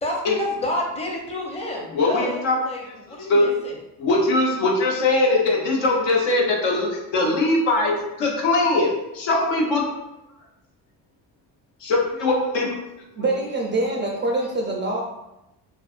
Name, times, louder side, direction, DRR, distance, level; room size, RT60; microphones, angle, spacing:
voice 1, 0.0-3.8, left 1 dB, 15° left, -1 dB, 0.6 m, -29 dB
voice 2, 1.9-2.6 2.8-3.5 4.0-8.9 9.1-9.8 11.8-12.7, left 2 dB, 70° left, -1 dB, 0.8 m, -21 dB
voice 3, 13.1-15.0, right 2 dB, 25° right, -1 dB, 0.3 m, -24 dB
2.5 x 2.4 x 2.4 m, 0.92 s
hypercardioid pair, 60°, 46 cm